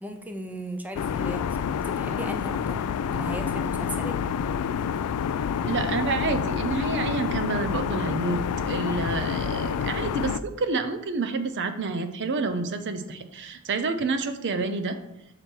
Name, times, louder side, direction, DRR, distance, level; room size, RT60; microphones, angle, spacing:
voice 1, 0.0-2.8 3.1-4.2, right 1 dB, 5° right, 5 dB, 0.5 m, -37 dB
sound 1, 0.9-10.4, left 7 dB, 85° left, 0.3 m, -28 dB
voice 2, 5.6-8.4 8.7-15.0, right 4 dB, 55° right, 9 dB, 0.6 m, -28 dB
5.9 x 4.9 x 4.5 m, 0.86 s
head